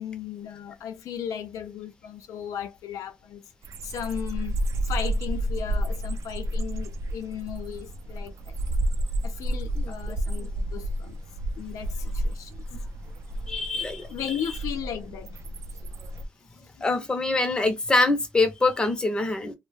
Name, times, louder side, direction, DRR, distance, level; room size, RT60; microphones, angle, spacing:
voice 1, 0.0-3.5 3.8-4.6 4.9-8.6 9.2-11.2 11.6-12.6 14.1-15.4, left 9 dB, 85° left, 0.4 m, -36 dB
sound 1, 3.6-16.2, right 1 dB, 60° right, 0.4 m, -31 dB
voice 2, 9.8-10.2 13.5-14.3 16.8-19.5, left 2 dB, 15° left, 0.5 m, -25 dB
2.2 x 2.1 x 3.2 m
cardioid pair, 140°, 6 cm